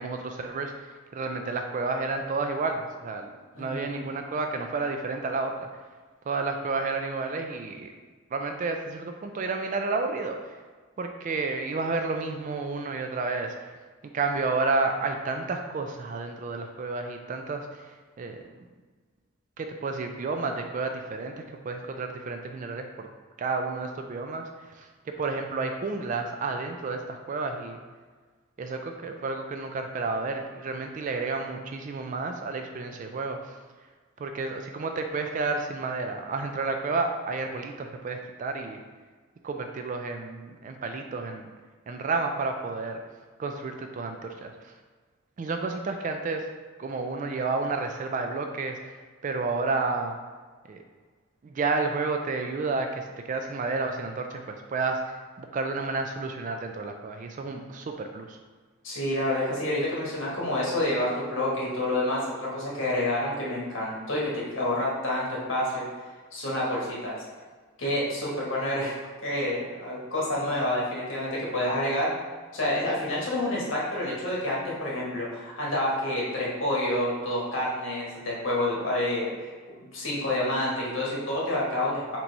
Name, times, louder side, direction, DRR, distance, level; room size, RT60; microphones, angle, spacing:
voice 1, 0.0-5.7 6.3-7.9 8.3-10.6 11.0-13.8 14.1-18.4 19.6-23.1 23.4-27.8 28.6-33.6 34.2-38.8 39.4-41.5 41.9-43.0 43.4-44.7 45.4-46.4 46.8-50.2 50.7-50.8 51.4-58.4, right 3 dB, 40° right, 5 dB, 0.3 m, -31 dB
voice 2, 3.6-4.0 58.8-65.8 66.3-67.2 67.8-72.1 72.5-79.5 79.9-82.2, left 1 dB, 65° left, -5 dB, 1.3 m, -28 dB
3.9 x 3.0 x 4.5 m, 1.4 s
head